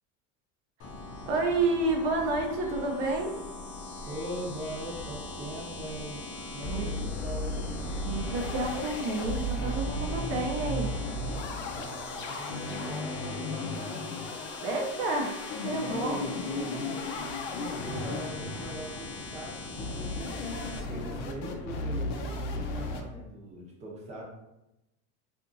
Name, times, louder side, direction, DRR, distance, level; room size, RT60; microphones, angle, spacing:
sound 1, 0.8-20.8, left 3 dB, 35° left, 0.5 m, -42 dB
voice 1, 1.3-3.3 6.6-7.1 8.0-10.9 14.6-16.2, right 2 dB, 60° right, 1 dB, 0.6 m, -30 dB
voice 2, 4.1-6.2 6.5-7.7 11.7-14.3 15.7-20.4 20.7-24.2, right 1 dB, 20° right, -3 dB, 0.6 m, -41 dB
sound 2, 4.5-5.4 5.8-5.9 6.1-6.2 6.6-23.0, left 1 dB, 85° left, 0.6 m, -35 dB
2.8 x 2.5 x 2.5 m, 0.93 s
supercardioid pair, 145°, 35 cm